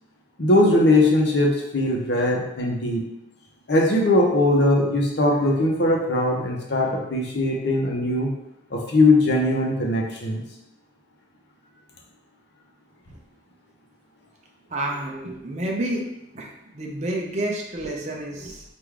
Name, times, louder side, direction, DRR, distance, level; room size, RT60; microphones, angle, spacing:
voice 1, 0.4-3.0 3.7-8.3 8.7-10.4, left 1 dB, 55° left, -1 dB, 0.8 m, -20 dB
voice 2, 14.7-16.0 16.3-18.6, right 1 dB, 35° right, -1 dB, 0.6 m, -29 dB
3.5 x 2.6 x 4.6 m, 0.85 s
head